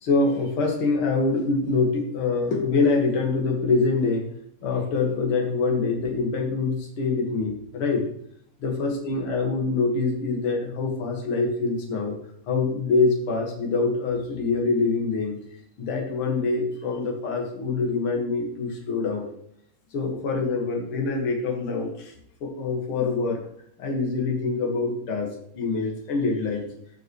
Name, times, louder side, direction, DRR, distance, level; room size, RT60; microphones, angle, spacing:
voice 1, 0.0-4.3 4.6-8.1 8.6-12.2 12.5-15.3 15.8-19.3 19.9-22.1 22.4-23.4 23.8-26.7, left 3 dB, 50° left, 0 dB, 1.8 m, -25 dB
16.5 x 5.9 x 3.2 m, 0.69 s
omnidirectional pair, 5.0 m